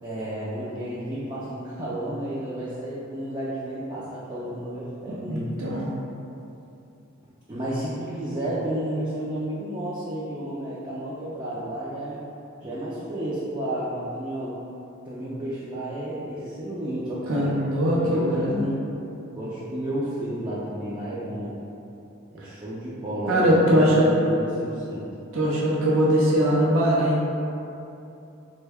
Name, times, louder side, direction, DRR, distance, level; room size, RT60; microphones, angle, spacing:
voice 1, 0.0-5.5 7.5-12.2 12.6-14.6 15.1-17.5 17.9-18.8 19.3-21.6 22.3-25.0, right 1 dB, 20° right, -9 dB, 0.4 m, -31 dB
voice 2, 5.3-5.9 17.3-18.7 22.4-22.5 23.3-24.1 25.3-27.2, equal, 75° right, -6 dB, 0.6 m, -21 dB
3.3 x 2.2 x 3.4 m, 2.8 s
head